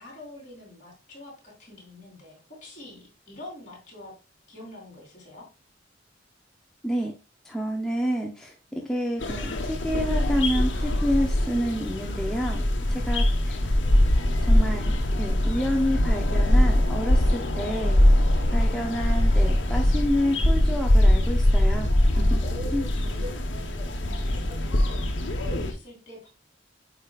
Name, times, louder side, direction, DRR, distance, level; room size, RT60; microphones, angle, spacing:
voice 1, 0.0-4.2 4.5-5.5 8.7-8.8 13.1-13.3 18.4-18.7 22.4-26.3, left 1 dB, 40° left, -2 dB, 3.7 m, -44 dB
voice 2, 7.4-12.6 12.9-13.6 14.4-18.0 18.5-22.4 22.7-22.8, equal, 5° left, -1 dB, 0.7 m, -29 dB
sound 1, 9.2-25.7, left 1 dB, 75° left, 1.2 m, -22 dB
8.6 x 5.0 x 2.4 m, 0.31 s
head